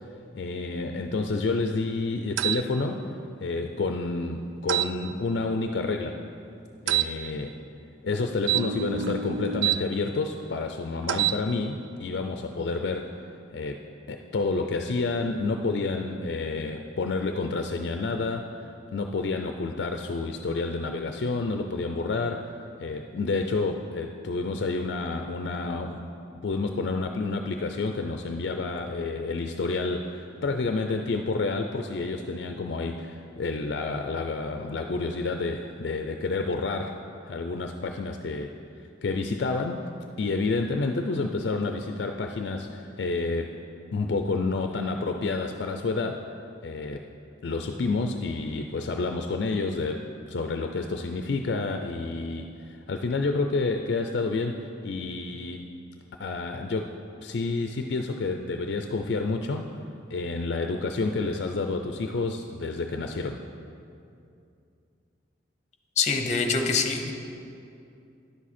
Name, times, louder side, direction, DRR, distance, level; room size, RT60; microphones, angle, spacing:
voice 1, 0.3-3.1 3.4-6.2 6.9-7.5 8.0-13.1 13.5-13.8 14.1-22.5 22.8-26.0 26.4-37.0 37.2-38.5 39.0-39.8 40.2-43.5 43.9-46.2 46.6-47.0 47.4-55.6 56.2-59.6 60.1-63.4, left 3 dB, 60° left, 5 dB, 0.4 m, -29 dB
sound 1, 2.4-2.6 4.7-4.9 6.9-7.1 8.4-9.8 11.0-11.4, right 11 dB, 90° right, 0.3 m, -26 dB
voice 2, 66.0-67.1, left 5 dB, 40° left, 5 dB, 0.7 m, -24 dB
10.5 x 7.4 x 4.2 m, 2.6 s
head